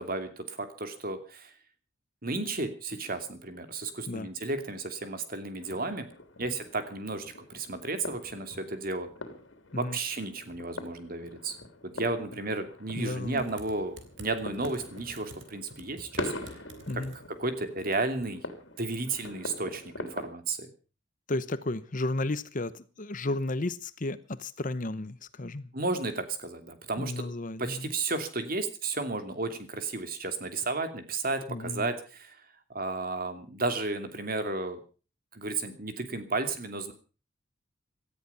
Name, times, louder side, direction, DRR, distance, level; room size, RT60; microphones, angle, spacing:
voice 1, 0.0-1.5 2.2-6.1 6.4-9.1 9.8-11.6 11.8-16.6 16.9-17.0 17.4-18.4 18.8-20.7 25.7-27.2 27.6-32.4 32.7-34.8 35.3-36.9, right 3 dB, 45° right, 2.7 m, -33 dB
sound 1, 5.6-20.3, left 2 dB, 65° left, 3.4 m, -43 dB
voice 2, 13.0-13.5 16.9-17.1 21.3-25.7 27.0-27.9 31.5-31.9, left 2 dB, 40° left, 0.9 m, -33 dB
Typing, 13.2-18.2, right 2 dB, 70° right, 3.5 m, -51 dB
18.0 x 13.5 x 5.6 m
head